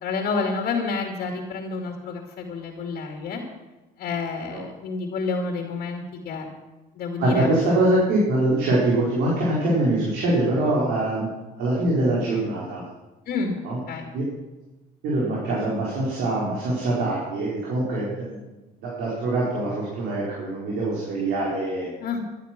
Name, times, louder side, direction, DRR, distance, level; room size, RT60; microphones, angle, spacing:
voice 1, 0.0-3.4 4.0-6.5 7.0-7.5 13.3-13.6 13.9-14.1 22.0-22.2, left 4 dB, 65° left, 2 dB, 2.6 m, -29 dB
voice 2, 7.2-11.3 11.6-12.8 13.6-13.8 14.1-14.2 15.0-18.4 18.8-21.9, right 2 dB, 90° right, -6 dB, 4.6 m, -23 dB
14.0 x 11.0 x 6.1 m, 1.1 s
cardioid pair, 110°, 17 cm